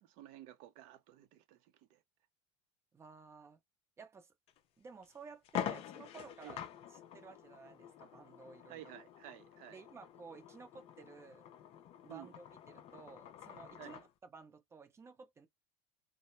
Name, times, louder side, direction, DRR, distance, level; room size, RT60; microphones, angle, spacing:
voice 1, 0.0-2.0 6.4-6.6 8.7-9.8 12.1-12.3 13.8-14.0, right 13 dB, 60° right, 0.6 m, -53 dB
voice 2, 2.9-3.6 4.0-4.3 4.8-6.6 7.1-8.9 9.7-11.5 12.0-14.0 14.3-15.5, right 4 dB, 20° right, 0.6 m, -54 dB
sound 1, 4.5-4.6 5.0-5.1 5.4-14.1, left 10 dB, 45° left, 0.4 m, -46 dB
2.1 x 2.0 x 2.8 m
supercardioid pair, 120°, 14 cm